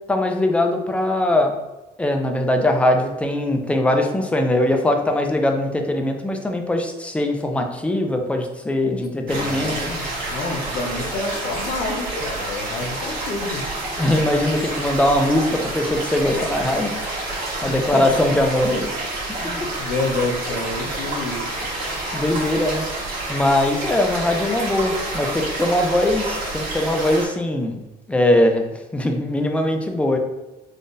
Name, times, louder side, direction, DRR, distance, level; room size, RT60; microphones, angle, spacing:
voice 1, 0.1-1.5 2.0-9.7 14.0-16.9 17.6-18.9 21.9-22.8 23.3-27.8 28.1-28.7 28.9-30.2, left 1 dB, 5° left, 3 dB, 0.4 m, -21 dB
voice 2, 9.2-13.7 17.7-18.0 19.3-21.4, left 3 dB, 65° left, 3 dB, 0.7 m, -28 dB
sound 1, 9.3-27.3, right 2 dB, 65° right, 1.4 m, -28 dB
3.7 x 2.5 x 2.6 m, 1.0 s
cardioid pair, 110°, 17 cm